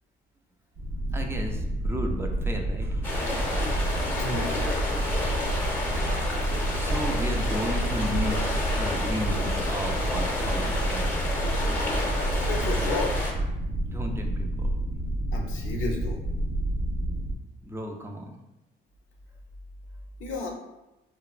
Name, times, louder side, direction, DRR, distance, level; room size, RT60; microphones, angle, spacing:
sound 1, 0.7-17.3, right 1 dB, 85° right, 0.5 m, -29 dB
voice 1, 1.1-3.4 6.8-8.5 8.8-11.1 13.9-14.7 17.6-18.4, equal, 10° right, 2 dB, 0.3 m, -34 dB
sound 2, 3.0-13.3, left 2 dB, 10° left, 0.7 m, -31 dB
voice 2, 4.2-4.8 12.4-13.1 15.3-16.2 20.2-20.5, left 3 dB, 85° left, 1 dB, 0.5 m, -32 dB
3.0 x 2.0 x 2.3 m, 0.96 s
cardioid pair, 90°, 20 cm